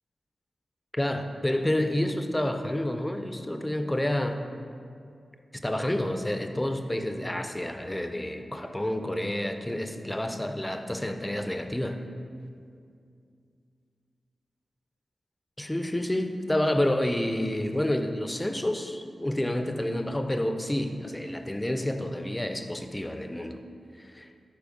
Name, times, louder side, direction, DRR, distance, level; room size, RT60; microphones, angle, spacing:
voice 1, 0.9-4.4 5.5-12.0 15.6-23.6 24.0-24.3, left 1 dB, 10° left, 7 dB, 0.3 m, -29 dB
7.0 x 4.6 x 3.7 m, 2.3 s
wide cardioid pair, 140°, 0 cm